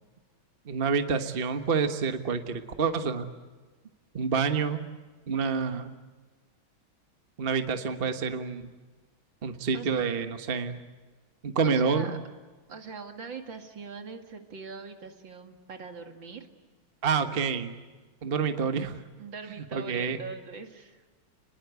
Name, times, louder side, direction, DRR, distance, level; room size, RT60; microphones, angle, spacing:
voice 1, 0.7-3.3 4.1-4.8 5.3-5.9 7.4-8.7 9.4-10.8 11.4-12.2 17.0-17.7 18.2-19.0 19.7-20.2, right 5 dB, 30° right, 7 dB, 1.3 m, -28 dB
voice 2, 11.6-12.2 12.7-16.5 19.2-21.0, right 5 dB, 65° right, 5 dB, 2.9 m, -41 dB
30.0 x 21.5 x 8.2 m, 1.3 s
omnidirectional pair, 2.3 m